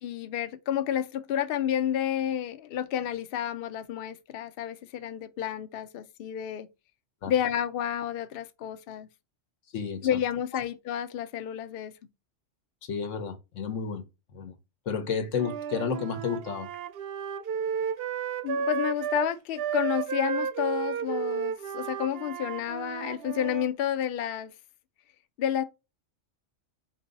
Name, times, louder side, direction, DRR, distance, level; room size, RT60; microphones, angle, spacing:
voice 1, 0.0-6.7 7.3-9.1 10.0-11.9 18.4-24.5 25.4-25.6, left 10 dB, 60° left, 0.7 m, -30 dB
voice 2, 9.7-10.2 12.8-14.1 14.3-14.6 14.9-16.7, left 6 dB, 90° left, 1.3 m, -31 dB
Wind instrument woodwind instrument, 15.3-23.7, right 7 dB, 60° right, 0.7 m, -33 dB
4.4 x 2.7 x 3.9 m
omnidirectional pair, 1.3 m